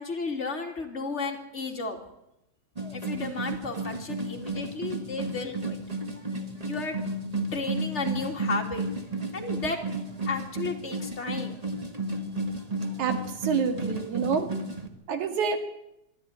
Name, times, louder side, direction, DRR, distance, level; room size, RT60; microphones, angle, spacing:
voice 1, 0.0-2.0 2.9-5.8 6.6-7.0 7.5-8.9 9.3-9.8 10.3-11.5, left 3 dB, 25° left, 2 dB, 2.7 m, -33 dB
sound 1, 2.8-14.9, right 2 dB, 20° right, 1.0 m, -33 dB
voice 2, 13.0-14.5 15.1-15.6, right 6 dB, 80° right, 7 dB, 3.4 m, -27 dB
24.5 x 12.5 x 9.8 m, 0.86 s
omnidirectional pair, 3.3 m